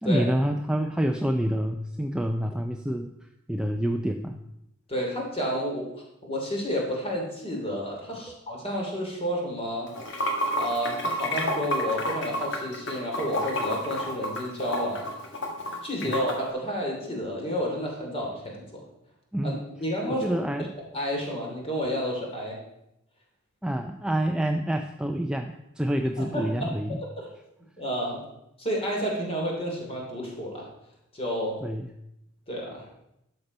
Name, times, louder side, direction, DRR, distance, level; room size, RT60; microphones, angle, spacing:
voice 1, 0.0-3.1 3.5-4.4 8.3-8.4 16.0-16.1 19.3-19.6 20.1-20.7 23.6-27.0 31.6-31.9, right 1 dB, 5° right, 4 dB, 0.4 m, -27 dB
voice 2, 4.9-9.9 10.6-15.0 15.8-18.8 19.4-19.5 19.8-20.4 20.9-22.6 26.2-27.3 27.8-28.2 28.6-30.6 31.1-31.6 32.5-32.8, equal, 25° left, -1 dB, 2.8 m, -30 dB
Water / Sink (filling or washing), 9.9-16.3, left 1 dB, 55° left, 1.8 m, -30 dB
11.5 x 6.7 x 5.3 m, 0.85 s
head